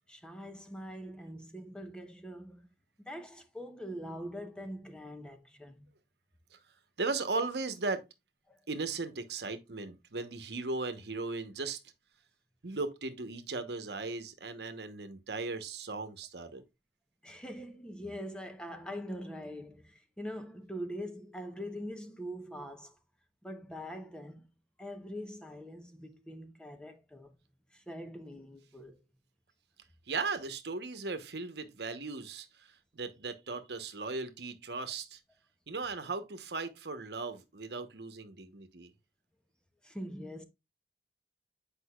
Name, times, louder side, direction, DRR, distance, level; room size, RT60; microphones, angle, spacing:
voice 1, 0.1-2.7 3.1-5.9 8.5-8.6 17.2-22.9 23.4-24.5 24.8-27.3 27.7-29.0 39.8-40.4, equal, 5° left, 0.9 m, -43 dB
voice 2, 7.0-8.0 8.7-11.8 12.6-16.6 30.1-32.7 32.9-35.2 35.7-38.9, right 3 dB, 75° right, 1.0 m, -37 dB
8.3 x 5.3 x 2.3 m
head